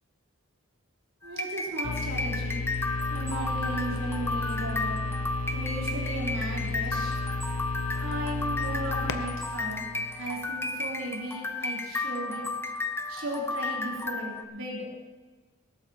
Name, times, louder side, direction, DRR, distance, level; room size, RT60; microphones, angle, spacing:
sound 1, 1.2-14.4, left 2 dB, 10° left, 0.9 m, -33 dB
voice 1, 1.2-2.7 3.1-5.1 5.5-7.2 8.0-9.9 10.2-12.5 13.1-15.0, right 1 dB, 70° right, -3 dB, 3.6 m, -36 dB
sound 2, 1.8-10.7, left 3 dB, 70° left, 0.7 m, -33 dB
19.0 x 8.5 x 4.4 m, 1.3 s
head